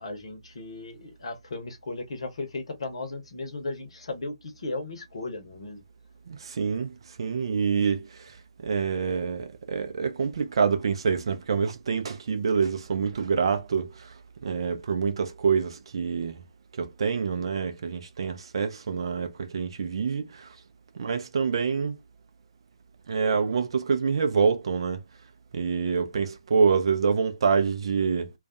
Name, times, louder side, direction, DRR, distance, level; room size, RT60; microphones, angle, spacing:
voice 1, 0.0-5.8, left 2 dB, 55° left, 0.8 m, -36 dB
voice 2, 6.3-8.4 8.6-14.1 14.4-16.4 16.8-20.5 20.9-22.0 23.1-25.0 25.5-28.3, right 5 dB, 50° right, 0.5 m, -26 dB
2.3 x 2.3 x 2.5 m
figure-of-eight pair, 135°, 3 cm